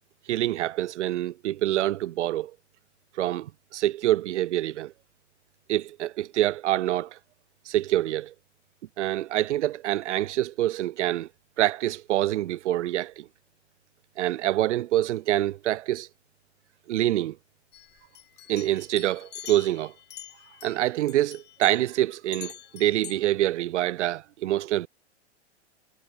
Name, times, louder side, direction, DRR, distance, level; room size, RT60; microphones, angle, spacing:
voice 1, 0.3-2.5 3.2-4.9 5.7-7.2 7.7-8.3 9.0-11.3 11.6-13.3 14.2-16.1 16.9-17.4 18.5-19.9 20.6-24.9, right 14 dB, 80° right, 0.5 m, -26 dB
sound 1, 17.7-20.8 21.1-21.9 22.3-23.2, left 12 dB, 30° left, 2.8 m, -45 dB
hypercardioid pair, 110°, 35 cm